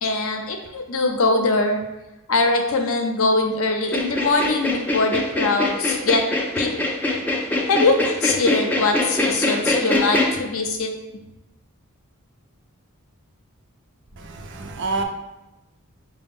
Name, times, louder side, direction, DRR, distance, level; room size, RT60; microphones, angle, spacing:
voice 1, 0.0-1.8 2.3-6.2 6.6-6.7 7.7-10.9, left 3 dB, 70° left, 3 dB, 0.5 m, -22 dB
sound 1, 3.8-10.3, left 2 dB, 10° left, 0.3 m, -23 dB
voice 2, 14.2-15.0, right 3 dB, 55° right, 4 dB, 0.5 m, -28 dB
4.8 x 2.1 x 3.6 m, 0.98 s
head